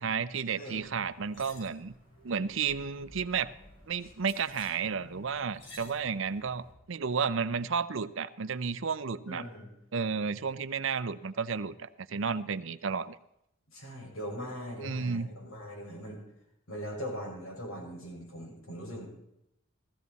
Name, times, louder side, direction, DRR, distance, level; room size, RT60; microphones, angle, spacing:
voice 1, 0.0-1.9 2.2-3.5 3.9-9.5 9.9-13.2 14.8-15.3, right 5 dB, 65° right, 14 dB, 0.6 m, -32 dB
sound 1, 0.7-6.7, left 1 dB, 60° left, 3.4 m, -53 dB
voice 2, 9.3-9.7 13.7-16.2 16.7-19.1, equal, 80° left, -1 dB, 5.5 m, -40 dB
15.5 x 15.0 x 4.1 m, 0.81 s
head